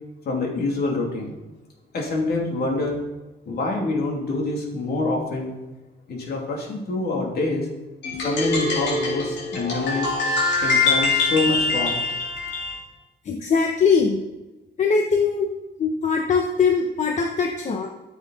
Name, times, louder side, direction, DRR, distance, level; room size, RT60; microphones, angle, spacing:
voice 1, 0.2-1.3 1.9-3.0 3.5-5.5 6.1-7.7 8.2-10.1 10.6-12.0, left 3 dB, 60° left, -1 dB, 2.7 m, -26 dB
sound 1, 8.0-12.8, left 3 dB, 80° left, 3.7 m, -23 dB
voice 2, 13.3-14.2 14.8-15.5 15.8-17.9, left 5 dB, 40° left, 2 dB, 0.9 m, -21 dB
13.5 x 8.0 x 4.1 m, 1.1 s
cardioid pair, 160°, 18 cm